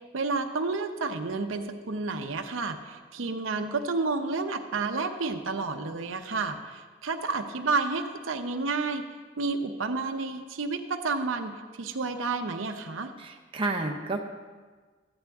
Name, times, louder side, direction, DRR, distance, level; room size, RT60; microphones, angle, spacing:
voice 1, 0.1-9.0 9.4-11.5 11.8-13.1, right 3 dB, 85° right, 5 dB, 0.7 m, -30 dB
voice 2, 13.2-14.2, right 2 dB, 25° right, 0 dB, 0.8 m, -30 dB
14.5 x 8.9 x 3.5 m, 1.4 s
head